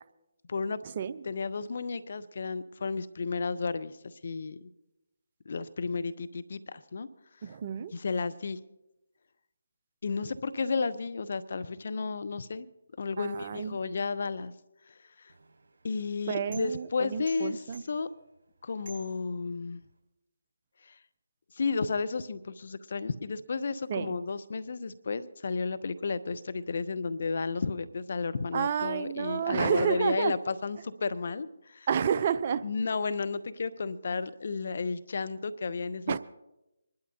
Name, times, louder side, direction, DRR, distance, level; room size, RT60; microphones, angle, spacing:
voice 1, 1.2-4.7 5.5-7.1 7.9-8.6 10.0-12.7 13.0-14.5 14.9-15.3 15.8-18.1 18.6-19.8 20.8-20.9 21.5-31.9 32.6-36.2, left 4 dB, 55° left, 14 dB, 0.6 m, -33 dB
voice 2, 7.4-7.9 13.2-13.8 16.3-17.8 23.9-24.2 28.5-30.3 31.9-32.6 36.1-36.2, right 7 dB, 40° right, 13 dB, 0.5 m, -30 dB
sound 1, 15.3-20.0, right 4 dB, 55° right, 3.7 m, -55 dB
26.0 x 11.5 x 2.8 m, 0.93 s
figure-of-eight pair, 155°, 0 cm